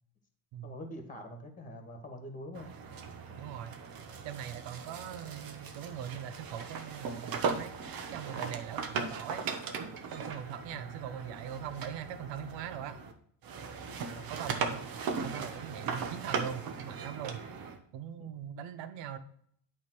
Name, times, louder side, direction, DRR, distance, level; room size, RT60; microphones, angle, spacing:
voice 1, 0.6-2.7 10.7-11.0 14.1-14.3 18.2-18.3, equal, 15° left, 5 dB, 2.0 m, -45 dB
sound 1, 2.5-13.1 13.4-17.8, right 5 dB, 50° right, 1.2 m, -38 dB
voice 2, 3.4-3.8 4.2-7.7 8.1-9.4 10.1-13.0 14.3-14.9 15.2-17.4 17.9-19.2, right 9 dB, 70° right, 11 dB, 1.1 m, -41 dB
8.4 x 3.7 x 6.1 m, 0.63 s
supercardioid pair, 95°, 46 cm